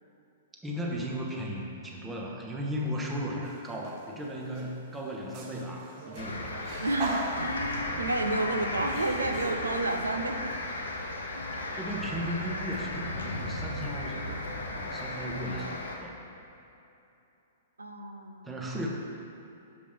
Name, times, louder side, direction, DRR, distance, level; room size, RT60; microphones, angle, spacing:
voice 1, 0.6-6.6 11.7-14.4 14.8-16.1 18.4-18.9, equal, 10° right, -2 dB, 0.9 m, -36 dB
sound 1, 3.4-4.0 4.4-9.6, right 2 dB, 45° right, 0.9 m, -40 dB
sound 2, 6.2-16.0, left 2 dB, 75° left, 0.7 m, -35 dB
voice 2, 6.8-10.5 11.3-11.6 17.8-18.6, right 2 dB, 85° right, 5 dB, 0.5 m, -31 dB
7.1 x 4.9 x 3.6 m, 2.8 s
figure-of-eight pair, 110°, 0 cm